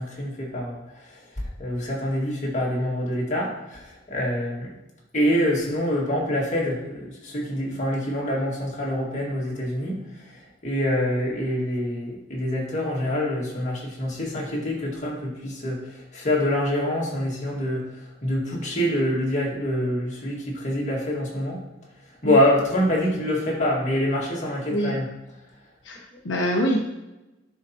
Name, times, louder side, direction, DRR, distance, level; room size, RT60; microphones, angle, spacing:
voice 1, 0.0-4.7 5.1-21.6 22.2-25.1, left 1 dB, 40° left, -4 dB, 2.0 m, -26 dB
voice 2, 25.8-26.9, equal, 90° left, 1 dB, 0.9 m, -25 dB
11.0 x 4.7 x 2.9 m, 0.98 s
head